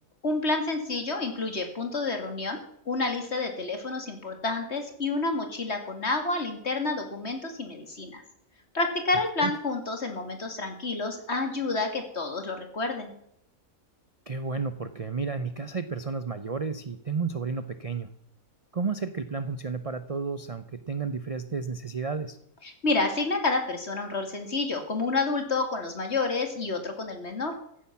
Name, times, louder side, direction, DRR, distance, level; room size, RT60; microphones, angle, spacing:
voice 1, 0.2-2.6 2.9-8.2 8.7-13.1 22.6-27.5, left 3 dB, 50° left, 5 dB, 2.7 m, -29 dB
voice 2, 14.3-18.1 18.7-22.4, right 4 dB, 35° right, 11 dB, 0.6 m, -32 dB
15.0 x 10.0 x 7.3 m, 0.70 s
omnidirectional pair, 1.5 m